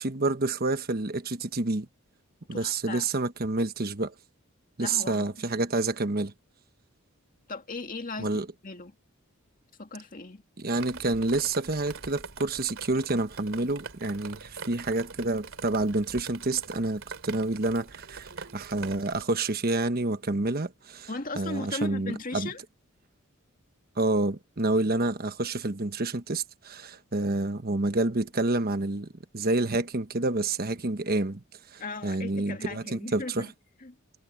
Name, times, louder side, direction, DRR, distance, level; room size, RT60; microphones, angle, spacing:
voice 1, 0.0-1.9 2.5-4.1 4.8-6.3 8.2-8.4 10.6-21.1 21.4-22.5 24.0-31.4 31.7-33.5, right 2 dB, 45° right, 1.2 m, -28 dB
voice 2, 2.5-3.1 4.8-5.5 7.5-8.3 8.6-9.0 9.8-10.4 21.1-22.6 31.8-33.5 33.8-34.0, left 3 dB, 40° left, 2.0 m, -37 dB
Drip, 10.7-19.2, right 4 dB, 65° right, 3.3 m, -43 dB
head